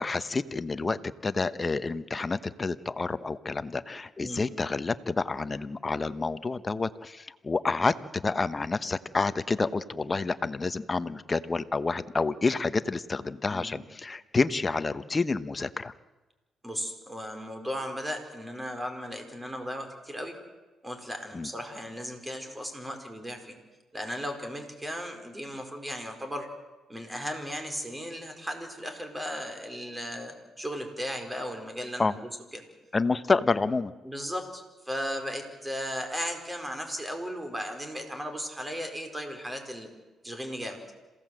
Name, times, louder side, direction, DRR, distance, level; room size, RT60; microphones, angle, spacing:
voice 1, 0.0-15.9 21.3-21.5 32.0-32.1 32.9-33.9, left 3 dB, 25° left, 13 dB, 1.0 m, -29 dB
voice 2, 13.5-13.8 16.6-20.4 20.8-23.6 23.9-26.5 26.9-32.1 32.5-32.6 34.0-39.9 40.2-40.8, equal, 10° right, 5 dB, 4.6 m, -36 dB
27.0 x 17.0 x 7.7 m, 1.2 s
cardioid pair, 90°, 0 cm